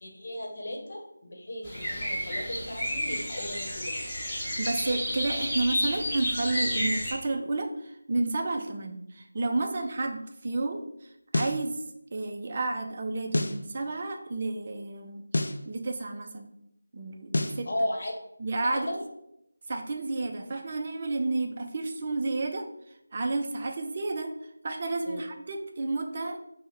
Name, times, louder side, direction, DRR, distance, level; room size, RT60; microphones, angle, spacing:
voice 1, 0.0-4.1 17.7-18.1 18.7-19.0 25.1-25.2, left 1 dB, 50° left, 0 dB, 0.9 m, -35 dB
sound 1, 1.6-7.1, equal, 10° left, 1.1 m, -31 dB
voice 2, 4.6-11.8 12.1-16.5 16.9-17.7 18.4-18.9 19.7-22.7 23.1-26.4, right 2 dB, 35° right, 3 dB, 0.4 m, -31 dB
sound 2, 11.3-11.6 13.3-13.6 15.3-15.6 17.3-17.6, left 1 dB, 65° left, 0.3 m, -28 dB
5.2 x 2.1 x 3.2 m, 0.80 s
figure-of-eight pair, 165°, 0 cm